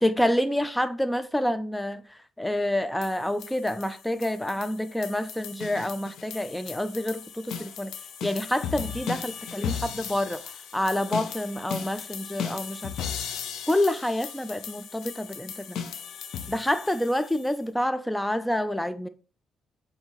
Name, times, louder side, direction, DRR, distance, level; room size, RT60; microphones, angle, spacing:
voice 1, 0.0-2.0 2.4-7.9 8.2-10.4 10.7-12.9 13.7-15.8 16.5-19.1, left 1 dB, 5° left, 0.4 m, -28 dB
sound 1, 3.0-17.6, left 7 dB, 75° left, 0.5 m, -37 dB
5.4 x 2.7 x 3.0 m
cardioid pair, 90°, 0 cm